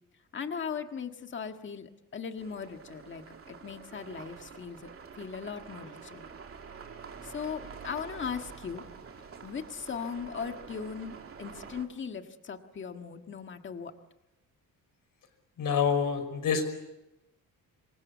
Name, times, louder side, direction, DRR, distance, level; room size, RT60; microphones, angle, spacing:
voice 1, 0.3-6.2 7.2-8.8 9.4-13.9, left 6 dB, 35° left, 6 dB, 1.7 m, -38 dB
sound 1, 2.4-11.9, right 6 dB, 40° right, 2.8 m, -47 dB
voice 2, 15.6-16.6, left 6 dB, 65° left, 8 dB, 5.5 m, -27 dB
27.5 x 24.0 x 8.4 m, 0.92 s
wide cardioid pair, 180°, 35 cm